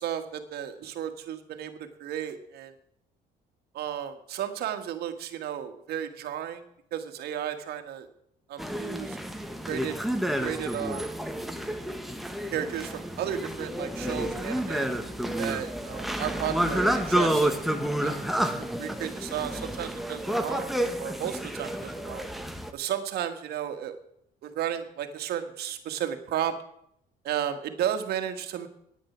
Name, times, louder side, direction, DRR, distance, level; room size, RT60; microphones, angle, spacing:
voice 1, 0.0-2.7 3.7-6.6 6.9-8.1 8.5-9.2 9.7-10.0 10.4-11.1 12.5-14.9 15.4-17.6 18.0-18.2 18.6-22.3 22.7-24.0 24.4-26.5 27.2-28.7, right 10 dB, 70° right, 7 dB, 1.6 m, -33 dB
sound 1, 8.6-22.7, right 1 dB, ahead, 1.1 m, -30 dB
10.0 x 8.9 x 7.2 m, 0.71 s
cardioid pair, 110°, 17 cm